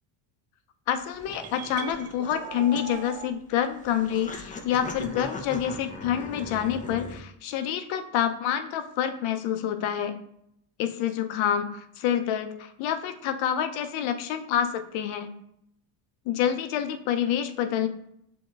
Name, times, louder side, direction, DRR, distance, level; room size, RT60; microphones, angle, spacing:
voice 1, 0.9-10.2 10.8-15.3 16.3-17.9, left 9 dB, 70° left, 9 dB, 0.7 m, -27 dB
sound 1, 1.0-7.2, left 2 dB, 15° left, 0.5 m, -40 dB
sound 2, 1.3-3.3, right 11 dB, 50° right, 0.5 m, -40 dB
7.1 x 2.9 x 2.4 m, 0.76 s
supercardioid pair, 90°, 50 cm